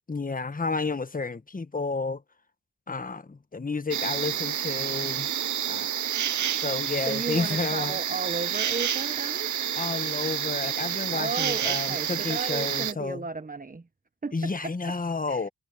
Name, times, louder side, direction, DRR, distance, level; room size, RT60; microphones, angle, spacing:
voice 1, 0.1-2.2 2.9-5.3 5.7-5.9 6.6-8.0 9.8-13.3 14.3-15.5, left 4 dB, 25° left, 1.3 m, -31 dB
sound 1, 3.9-12.9, right 9 dB, 70° right, 0.7 m, -29 dB
voice 2, 7.0-9.5 11.1-13.9 14.2-14.7 15.3-15.5, right 3 dB, 25° right, 1.1 m, -34 dB
cardioid pair, 65°, 31 cm